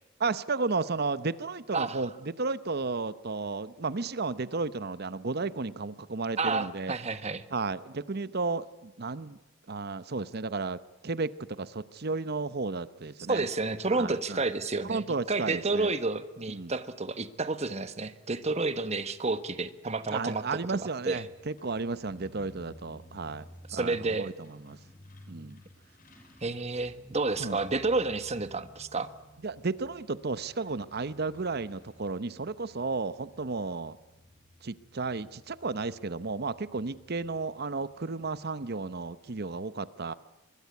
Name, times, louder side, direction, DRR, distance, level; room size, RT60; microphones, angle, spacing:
voice 1, 0.2-6.9 7.5-9.4 9.7-13.5 13.9-14.4 14.8-15.9 16.5-16.7 20.1-24.8 25.3-25.6 27.4-27.6 29.4-34.0 34.6-40.1, right 3 dB, 50° right, 15 dB, 0.8 m, -33 dB
voice 2, 6.4-7.4 13.3-20.4 20.8-21.2 23.7-24.3 26.4-29.1, right 3 dB, 30° right, 11 dB, 1.4 m, -30 dB
Truck, 21.1-39.6, equal, 45° left, 6.1 m, -56 dB
25.0 x 22.0 x 9.5 m, 1.0 s
head